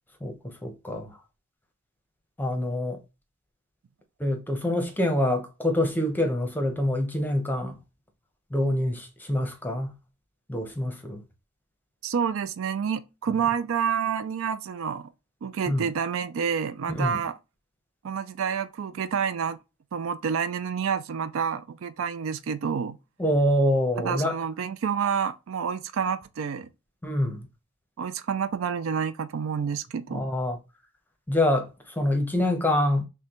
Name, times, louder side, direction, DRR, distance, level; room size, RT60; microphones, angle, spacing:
voice 1, 0.2-1.2 2.4-3.0 4.2-7.8 8.5-9.9 10.5-11.2 15.7-15.9 16.9-17.2 23.2-24.4 27.0-27.5 30.1-30.6 31.3-33.0, left 1 dB, 10° left, 0.7 m, -26 dB
voice 2, 12.0-15.1 15.4-17.4 18.0-19.6 19.9-23.0 24.0-26.7 28.0-30.2, right 7 dB, 65° right, 0.4 m, -28 dB
5.9 x 2.2 x 2.9 m
head